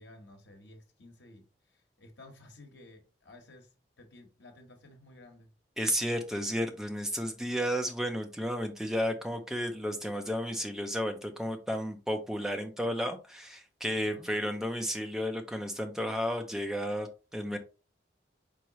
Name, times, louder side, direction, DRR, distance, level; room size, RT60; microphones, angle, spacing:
voice 1, 0.0-5.5 13.9-14.3, left 2 dB, 80° left, 1.3 m, -54 dB
voice 2, 5.8-17.6, equal, 5° right, 0.6 m, -32 dB
4.7 x 3.7 x 3.0 m
head